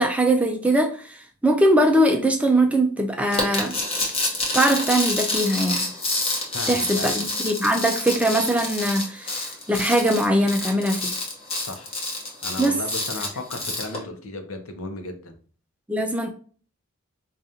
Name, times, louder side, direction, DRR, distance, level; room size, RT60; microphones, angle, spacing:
voice 1, 0.0-3.8 4.5-5.8 6.7-11.1 12.6-12.8 15.9-16.3, right 1 dB, 5° right, 0.3 m, -21 dB
sound 1, 3.3-14.0, left 2 dB, 25° left, 0.8 m, -28 dB
voice 2, 6.5-7.3 11.6-11.9 12.4-15.3, left 2 dB, 75° left, 0.7 m, -35 dB
4.9 x 2.4 x 2.7 m
head